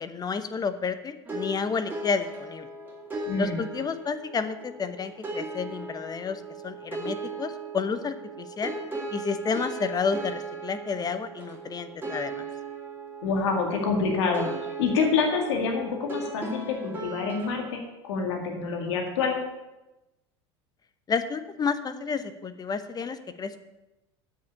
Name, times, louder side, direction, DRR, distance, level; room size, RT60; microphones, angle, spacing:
voice 1, 0.0-2.7 3.4-8.7 9.1-12.5 21.1-23.6, left 5 dB, 25° left, 11 dB, 0.9 m, -31 dB
sound 1, 1.3-17.7, right 3 dB, 15° right, 2.9 m, -37 dB
voice 2, 13.2-14.5 14.8-19.4, left 4 dB, 75° left, 2 dB, 2.0 m, -27 dB
7.8 x 7.0 x 8.4 m, 1.0 s
hypercardioid pair, 85°, 15 cm